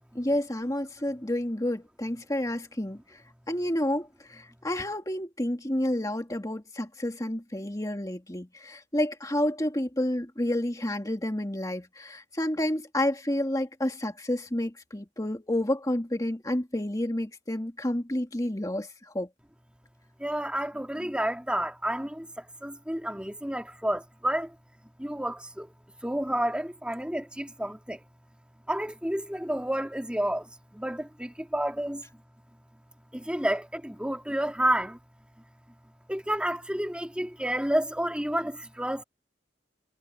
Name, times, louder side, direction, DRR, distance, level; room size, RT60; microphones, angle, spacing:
voice 1, 0.2-3.0 3.5-18.9 19.1-19.3, left 1 dB, 20° left, 2.2 m, -30 dB
voice 2, 20.2-24.5 25.0-25.7 26.0-28.0 28.7-32.0 33.1-35.0 36.1-39.0, right 1 dB, 5° right, 2.4 m, -30 dB
head